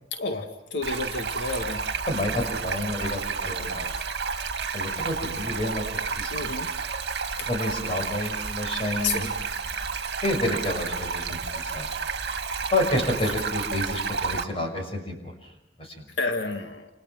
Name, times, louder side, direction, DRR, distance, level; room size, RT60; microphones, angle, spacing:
voice 1, 0.1-1.8 3.4-3.8 6.3-6.7 9.0-9.3 16.2-16.9, left 3 dB, 90° left, 5 dB, 1.9 m, -30 dB
Stream, 0.8-14.4, right 5 dB, 65° right, 2.0 m, -31 dB
voice 2, 2.1-3.9 4.7-5.8 6.2-6.3 7.4-9.3 10.2-11.9 12.7-15.5 15.8-16.0, left 1 dB, 35° left, 3 dB, 6.1 m, -29 dB
29.5 x 28.5 x 6.1 m, 0.85 s
head